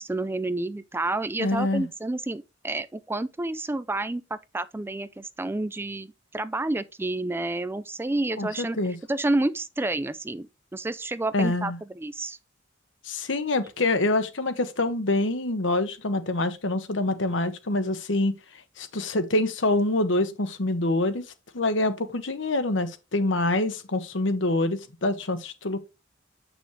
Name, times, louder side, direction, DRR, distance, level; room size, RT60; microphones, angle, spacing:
voice 1, 0.0-8.8 9.1-12.4, right 2 dB, 10° right, 0.4 m, -29 dB
voice 2, 1.4-1.9 8.4-9.0 11.3-11.8 13.0-18.3 18.8-21.2 21.5-25.9, left 2 dB, 70° left, 1.1 m, -26 dB
8.0 x 6.1 x 3.2 m
head